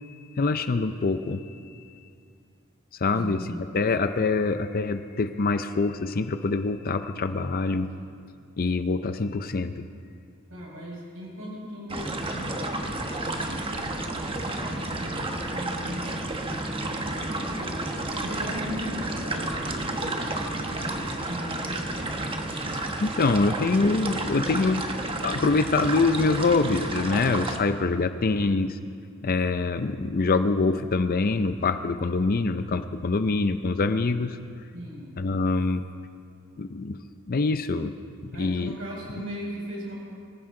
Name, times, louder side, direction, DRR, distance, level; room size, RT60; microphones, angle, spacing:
voice 1, 0.4-1.5 3.0-3.4 3.7-7.9 8.6-9.8 23.0-24.8 25.2-28.8 29.2-34.4 35.2-35.8 36.6-37.0 37.3-37.9 38.2-38.7, left 3 dB, 45° left, 10 dB, 0.5 m, -25 dB
voice 2, 3.1-3.9 10.5-17.7 18.2-22.2 34.7-35.2 38.3-39.9, equal, 75° right, -4 dB, 5.3 m, -39 dB
sound 1, 11.9-27.6, right 2 dB, 25° right, 1.2 m, -31 dB
24.5 x 15.0 x 3.8 m, 2.3 s
head